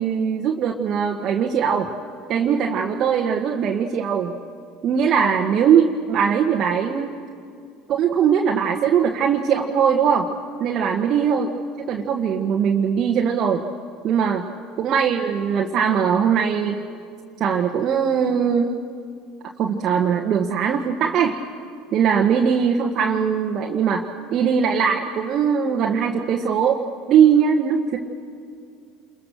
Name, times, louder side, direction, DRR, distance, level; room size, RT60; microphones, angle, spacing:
voice 1, 0.0-1.9 2.3-4.3 4.8-7.1 7.9-10.3 10.6-11.5 11.9-13.6 14.0-14.4 14.8-16.8 17.4-18.7 19.6-21.4 21.9-28.0, right 7 dB, 50° right, 1 dB, 1.6 m, -20 dB
28.0 x 22.5 x 6.6 m, 2.3 s
hypercardioid pair, 70°, 0 cm